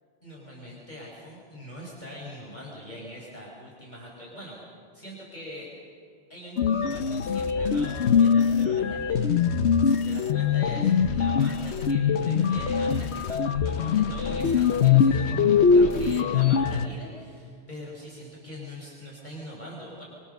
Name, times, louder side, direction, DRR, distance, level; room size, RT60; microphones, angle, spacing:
voice 1, 0.2-4.6 4.9-5.7 6.3-9.5 9.8-20.0, equal, 45° left, -4 dB, 5.2 m, -43 dB
sound 1, 6.6-16.9, left 6 dB, 85° left, 1.2 m, -22 dB
26.0 x 24.0 x 6.8 m, 2.2 s
omnidirectional pair, 1.1 m